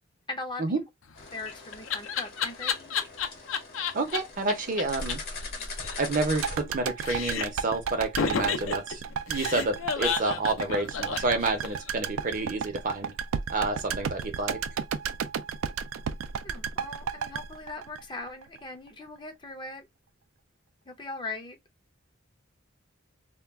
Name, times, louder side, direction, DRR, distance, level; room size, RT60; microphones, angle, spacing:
voice 1, 0.3-0.6 1.3-3.0 16.4-19.9 20.9-21.6, left 3 dB, 25° left, 0.5 m, -39 dB
Laughter, 1.1-4.2 4.5-4.6 4.8-4.9 5.1-5.2 5.4-6.8 7.0-7.7 8.2-11.9, left 6 dB, 70° left, 0.5 m, -31 dB
sound 1, 1.2-6.6, left 2 dB, 50° left, 0.9 m, -40 dB
voice 2, 3.9-5.2 6.0-9.0 9.3-13.1 13.5-14.6, right 3 dB, 45° right, 0.6 m, -29 dB
sound 2, 6.4-18.6 18.9-19.0, right 7 dB, 85° right, 0.3 m, -33 dB
2.3 x 2.2 x 3.4 m
head